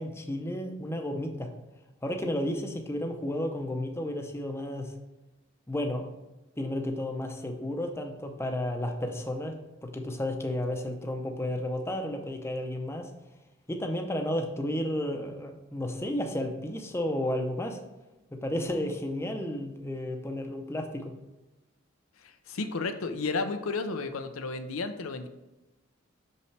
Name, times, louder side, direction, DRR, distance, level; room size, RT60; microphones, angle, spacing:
voice 1, 0.0-1.5 2.0-4.9 5.7-6.1 6.6-9.6 9.8-13.1 13.7-17.8 18.3-21.1, left 1 dB, 10° left, 3 dB, 0.6 m, -32 dB
voice 2, 22.2-25.3, left 3 dB, 90° left, 8 dB, 0.6 m, -32 dB
6.3 x 5.5 x 3.3 m, 1.0 s
head